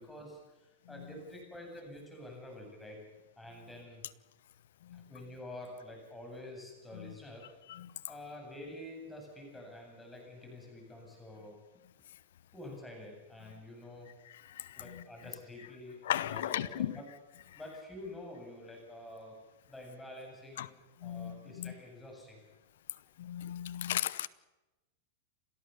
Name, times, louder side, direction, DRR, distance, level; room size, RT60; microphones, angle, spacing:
voice 1, 0.0-3.0 3.4-4.0 4.9-7.5 8.1-11.6 12.5-14.1 14.7-17.1 17.5-19.4 19.7-22.4, left 1 dB, 5° left, 7.9 m, -48 dB
voice 2, 14.5-15.0 16.0-17.0 20.6-20.7 21.0-21.7 23.2-24.3, left 11 dB, 80° left, 0.8 m, -36 dB
29.5 x 14.0 x 7.0 m
supercardioid pair, 130°, 0 cm